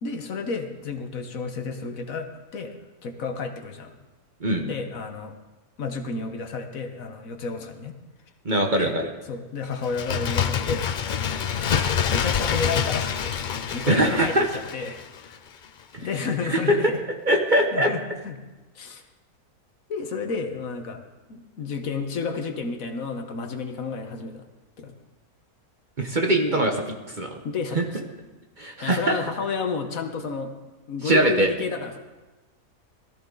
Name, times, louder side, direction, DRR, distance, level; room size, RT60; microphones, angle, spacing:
voice 1, 0.0-2.8 3.0-3.9 4.6-5.4 5.8-7.9 8.8-9.0 9.3-11.5 12.1-15.4 16.0-17.0 17.7-18.4 18.7-19.0 19.9-21.0 21.3-24.5 24.8-24.9 26.3-26.6 27.4-28.1 28.8-30.5 30.9-32.0, left 4 dB, 65° left, 6 dB, 1.5 m, -31 dB
voice 2, 8.4-9.1 13.9-14.5 15.9-16.1 16.5-16.8 17.3-17.9 26.0-26.7 27.1-27.3 27.7-27.8 28.6-29.2 31.0-31.5, right 1 dB, 35° right, 2 dB, 1.0 m, -21 dB
Bird, 9.8-15.4 15.6-15.7, left 8 dB, 85° left, 0.4 m, -26 dB
17.5 x 13.5 x 3.9 m, 1.1 s
omnidirectional pair, 1.6 m